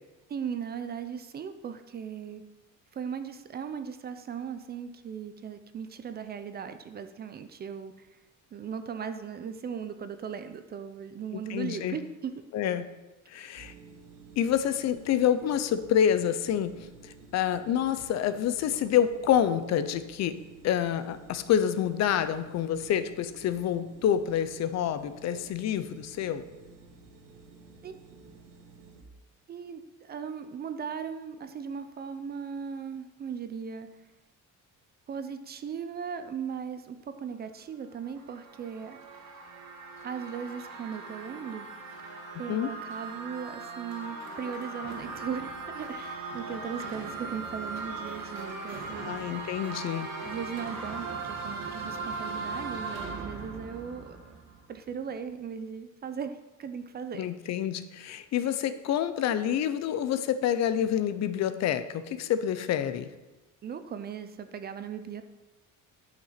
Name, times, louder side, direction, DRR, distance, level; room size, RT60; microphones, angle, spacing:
voice 1, 0.3-2.4 2.9-8.1 8.5-12.3 13.3-13.5 27.8-27.9 29.5-33.9 35.1-39.0 40.0-41.7 42.0-42.1 42.4-49.2 50.2-54.2 54.7-57.3 63.6-65.2, right 7 dB, 30° right, 9 dB, 0.5 m, -38 dB
voice 2, 11.3-12.0 12.5-12.8 13.3-13.7 14.4-16.7 17.0-20.4 20.6-26.5 42.5-42.7 49.0-50.1 57.2-63.1, left 9 dB, 55° left, 12 dB, 0.6 m, -27 dB
sound 1, 13.6-29.0, right 4 dB, 90° right, 1.4 m, -52 dB
sound 2, 37.9-54.9, right 3 dB, 55° right, 1.9 m, -39 dB
10.5 x 5.9 x 5.7 m, 1.1 s
cardioid pair, 175°, 32 cm